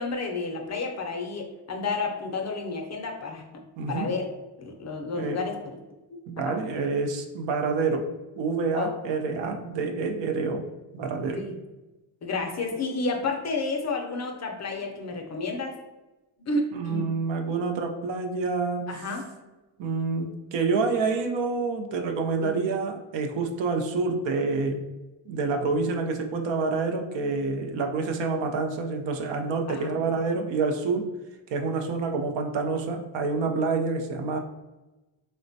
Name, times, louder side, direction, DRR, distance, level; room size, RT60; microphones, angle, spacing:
voice 1, 0.0-3.6 3.9-4.3 4.6-5.8 6.1-6.5 8.7-8.9 11.3-11.6 12.2-15.8 16.4-17.1 18.9-19.6 22.4-22.6 29.7-30.0, left 3 dB, 35° left, 2 dB, 0.5 m, -31 dB
voice 2, 3.8-4.1 5.1-5.4 6.3-8.1 8.4-10.6 10.9-11.4 16.7-18.8 19.8-24.8 25.3-31.1 31.5-34.4, right 4 dB, 65° right, 4 dB, 0.6 m, -27 dB
3.1 x 2.1 x 2.6 m, 1.1 s
cardioid pair, 95°, 47 cm